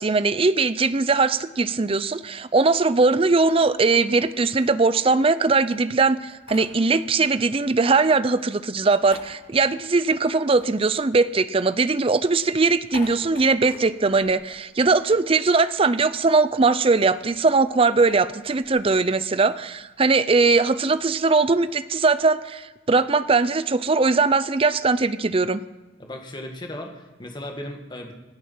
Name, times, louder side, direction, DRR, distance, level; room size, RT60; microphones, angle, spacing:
voice 1, 0.0-25.6, right 3 dB, 30° right, 14 dB, 0.5 m, -20 dB
sound 1, 3.2-5.4 5.7-7.3 7.6-11.8 12.1-15.4 15.6-15.7 16.0-21.8, left 3 dB, 70° left, 4.3 m, -48 dB
voice 2, 26.0-28.1, left 1 dB, 25° left, 3 dB, 1.8 m, -36 dB
26.0 x 9.4 x 5.7 m, 1.3 s
head